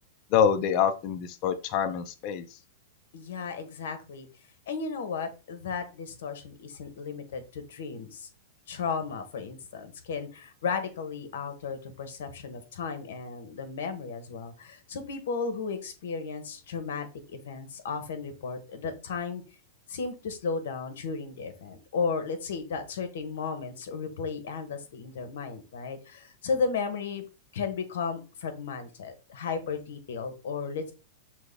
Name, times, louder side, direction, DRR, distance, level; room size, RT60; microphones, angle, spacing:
voice 1, 0.3-2.5, left 8 dB, 35° left, 9 dB, 0.5 m, -25 dB
voice 2, 3.1-4.3 4.7-8.3 8.7-19.4 19.9-27.2 27.5-30.9, left 5 dB, 75° left, 9 dB, 1.0 m, -34 dB
6.0 x 2.2 x 3.4 m, 0.33 s
supercardioid pair, 160°, 0 cm